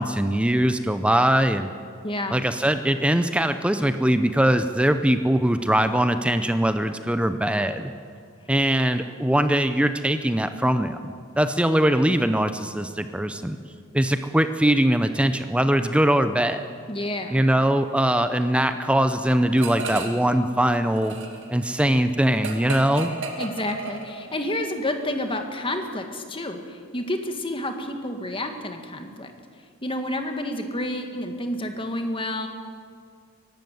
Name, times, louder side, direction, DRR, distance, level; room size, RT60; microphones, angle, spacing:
voice 1, 0.0-1.7 2.3-7.9 8.5-11.0 11.4-13.6 13.9-16.7 17.3-21.1 21.5-23.1, right 1 dB, 5° right, 9 dB, 0.6 m, -21 dB
voice 2, 2.0-2.4 16.9-17.4 23.4-29.3 29.8-32.5, left 1 dB, 25° left, 5 dB, 1.8 m, -29 dB
sound 1, 19.6-20.3 20.6-24.4, right 3 dB, 60° right, 2.4 m, -34 dB
22.5 x 12.5 x 9.3 m, 2.2 s
head